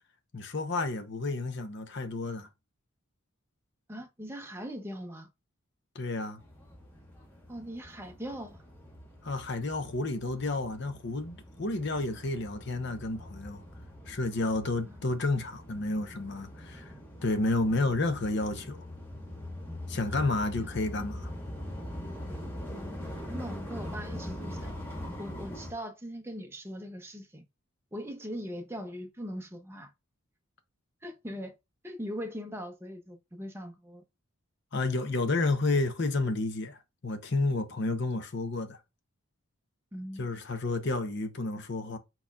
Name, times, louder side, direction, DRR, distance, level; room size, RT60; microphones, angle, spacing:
voice 1, 0.3-2.5 5.9-6.4 9.2-13.6 14.1-16.9 17.2-18.8 19.9-21.3 34.7-38.8 40.2-42.0, left 2 dB, 50° left, 0.8 m, -31 dB
voice 2, 3.9-5.3 7.5-8.6 14.8-15.1 20.1-20.7 22.7-24.7 25.2-27.4 27.9-29.9 31.0-31.5 31.8-34.0 39.9-40.3, equal, 10° right, 0.7 m, -41 dB
sound 1, 6.4-25.7, left 1 dB, 10° left, 1.1 m, -42 dB
4.3 x 4.0 x 2.3 m
head